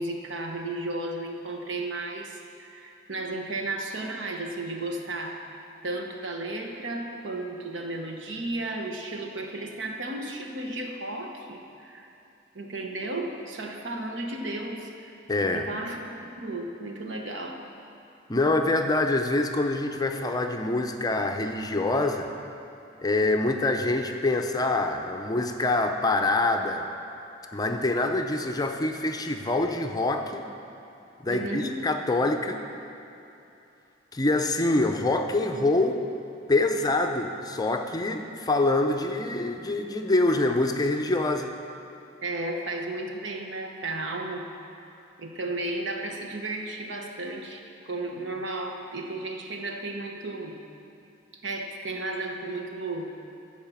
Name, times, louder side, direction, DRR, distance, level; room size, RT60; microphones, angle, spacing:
voice 1, 0.0-12.1 12.5-15.1 15.5-17.6 31.3-31.8 42.2-44.5 45.2-50.6 51.4-53.2, right 2 dB, 80° right, 2 dB, 1.1 m, -34 dB
voice 2, 15.3-15.7 18.3-22.3 23.0-26.9 27.5-30.4 31.2-32.6 34.1-36.0 36.5-41.5, left 2 dB, 20° left, 5 dB, 0.5 m, -25 dB
12.5 x 4.8 x 7.3 m, 2.8 s
head